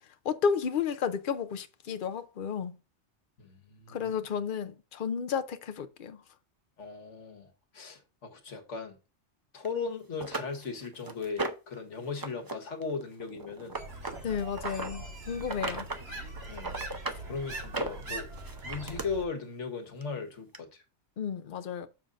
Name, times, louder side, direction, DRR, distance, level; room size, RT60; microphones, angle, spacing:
voice 1, 0.2-2.8 3.9-6.2 14.2-16.2 21.2-21.9, left 6 dB, 50° left, 0.8 m, -32 dB
voice 2, 3.4-4.1 6.8-9.0 9.5-13.8 16.5-16.7 17.2-18.3 18.6-20.8, left 5 dB, 85° left, 1.6 m, -37 dB
sound 1, 9.6-9.7 10.2-11.7 12.1-12.5 12.8-14.9 15.4-16.0 16.4-17.2 17.6-19.0 20.0-20.1 20.5-20.6, right 2 dB, 25° right, 0.6 m, -36 dB
sound 2, 13.7-19.2, right 2 dB, 60° right, 1.9 m, -42 dB
7.0 x 3.8 x 5.3 m
omnidirectional pair, 1.2 m